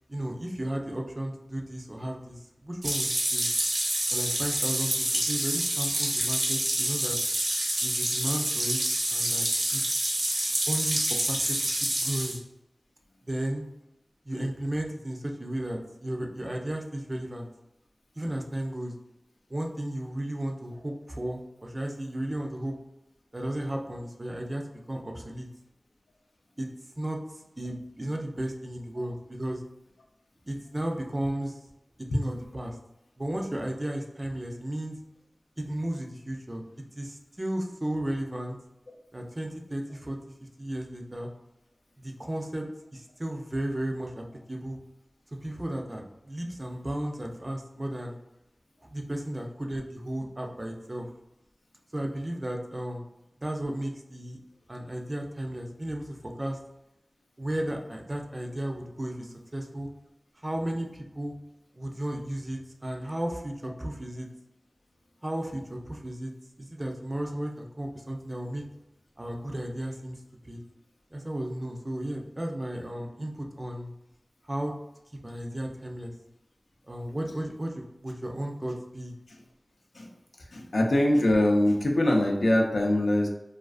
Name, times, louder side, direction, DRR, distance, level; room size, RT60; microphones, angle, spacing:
voice 1, 0.1-3.5 4.1-7.2 7.8-8.8 9.1-9.5 9.7-9.8 10.7-12.4 13.3-13.7 14.2-17.5 18.2-18.9 19.5-22.7 23.3-25.5 26.6-26.7 27.0-27.2 27.6-29.6 30.5-31.6 32.0-32.8 33.2-35.0 35.6-36.6 37.0-38.6 39.1-41.3 42.0-42.7 42.9-44.8 45.4-48.2 48.8-51.1 51.9-53.0 53.4-54.4 54.7-56.6 57.4-59.9 60.4-61.3 61.7-64.3 65.2-66.3 66.6-68.6 69.2-70.2 70.4-70.6 71.1-73.9 74.5-74.7 75.2-76.1 76.9-79.1, right 1 dB, 30° right, 1 dB, 0.4 m, -34 dB
sound 1, 2.8-12.4, right 1 dB, 80° right, 0.7 m, -27 dB
voice 2, 80.4-83.3, left 1 dB, 85° left, 1 dB, 0.4 m, -23 dB
2.4 x 2.4 x 2.3 m, 0.88 s
wide cardioid pair, 70°, 0 cm